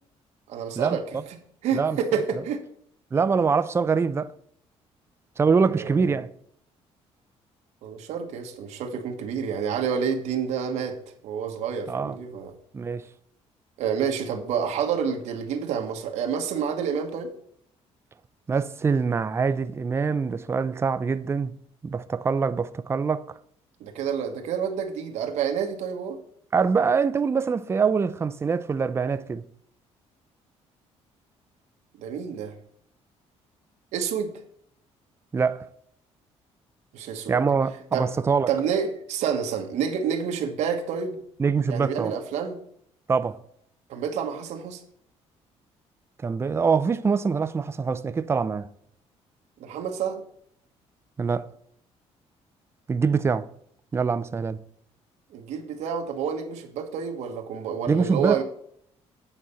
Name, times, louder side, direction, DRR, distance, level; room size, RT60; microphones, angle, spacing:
voice 1, 0.5-1.4 1.6-2.6 5.7-6.2 7.8-11.0 11.2-12.5 13.8-17.3 23.8-26.2 32.0-32.5 33.9-34.4 36.9-37.4 37.9-38.1 38.5-41.2 41.7-42.6 43.9-44.8 49.6-50.2 55.3-58.4, right 7 dB, 85° right, 1.3 m, -28 dB
voice 2, 3.1-4.3 5.4-6.3 11.9-12.2 12.7-13.1 18.5-21.5 21.8-23.2 26.5-29.4 35.3-35.6 37.3-38.5 41.4-42.1 43.1-43.4 46.2-48.7 51.2-51.5 52.9-53.5 53.9-54.6 57.9-58.4, right 5 dB, 20° right, 0.4 m, -24 dB
8.8 x 4.2 x 6.8 m
cardioid pair, 115°, 12 cm